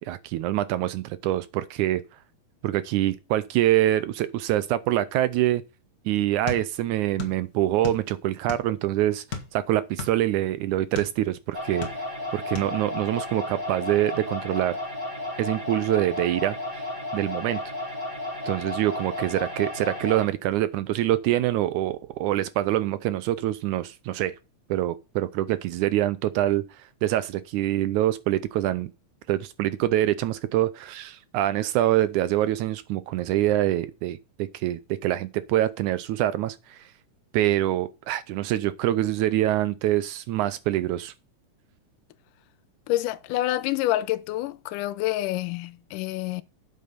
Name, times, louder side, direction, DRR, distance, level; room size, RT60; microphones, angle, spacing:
voice 1, 0.0-2.0 2.6-5.6 6.1-9.2 9.5-12.0 12.3-14.8 15.4-16.9 17.1-17.6 18.4-24.3 24.7-28.9 29.3-36.9 37.3-41.1, right 14 dB, 75° right, 1.9 m, -25 dB
sound 1, 6.5-7.4 7.7-8.8 9.3-11.2 11.6-12.3 12.6-12.7, left 5 dB, 35° left, 1.7 m, -35 dB
sound 2, 11.5-20.3, left 1 dB, 15° right, 2.7 m, -33 dB
voice 2, 42.9-46.4, left 15 dB, 80° left, 2.2 m, -27 dB
8.5 x 7.2 x 5.6 m
omnidirectional pair, 3.8 m